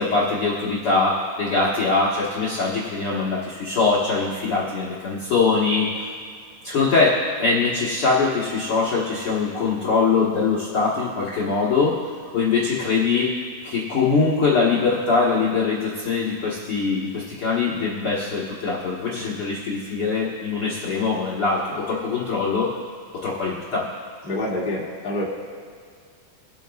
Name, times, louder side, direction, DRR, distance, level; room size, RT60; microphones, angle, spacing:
voice 1, 0.0-6.1 6.6-12.0 12.3-13.3 13.6-22.7 23.2-23.9, left 4 dB, 50° left, -6 dB, 1.7 m, -22 dB
voice 2, 24.2-25.2, left 1 dB, 15° left, -7 dB, 1.7 m, -26 dB
23.0 x 9.1 x 2.4 m, 2.1 s
omnidirectional pair, 4.2 m